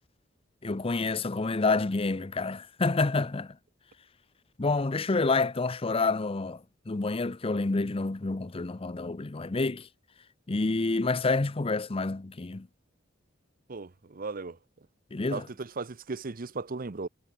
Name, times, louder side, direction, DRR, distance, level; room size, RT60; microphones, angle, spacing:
voice 1, 0.6-3.6 4.6-9.9 10.5-12.7 15.1-15.5, left 3 dB, 30° left, 0.6 m, -28 dB
voice 2, 13.7-14.6 15.3-17.1, right 3 dB, 45° right, 0.7 m, -36 dB
head